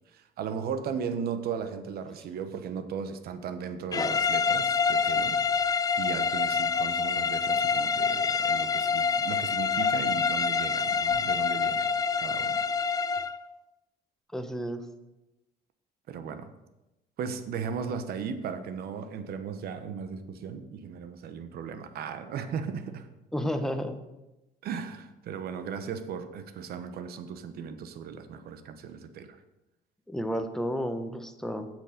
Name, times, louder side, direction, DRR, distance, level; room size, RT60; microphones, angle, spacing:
voice 1, 0.1-11.9 12.2-12.6 16.1-16.5 17.2-23.1 24.6-29.4, right 6 dB, 65° right, 10 dB, 1.0 m, -36 dB
sound 1, 3.9-13.4, left 5 dB, 20° left, 0.3 m, -26 dB
voice 2, 14.3-14.9 23.3-24.0 30.1-31.7, equal, 5° left, 7 dB, 0.9 m, -31 dB
8.5 x 6.4 x 5.7 m, 0.99 s
cardioid pair, 110°, 17 cm